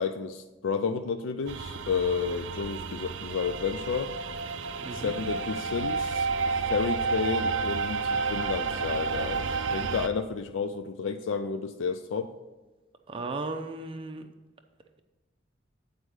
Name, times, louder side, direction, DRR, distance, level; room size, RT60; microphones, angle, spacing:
voice 1, 0.0-4.1 4.9-6.3 6.7-12.3, left 5 dB, 90° left, 9 dB, 0.4 m, -31 dB
sound 1, 1.5-10.1, right 4 dB, 80° right, 0.5 m, -31 dB
voice 2, 4.8-5.1 13.1-14.3, right 3 dB, 30° right, 5 dB, 0.5 m, -35 dB
8.2 x 4.8 x 6.2 m, 1.1 s
head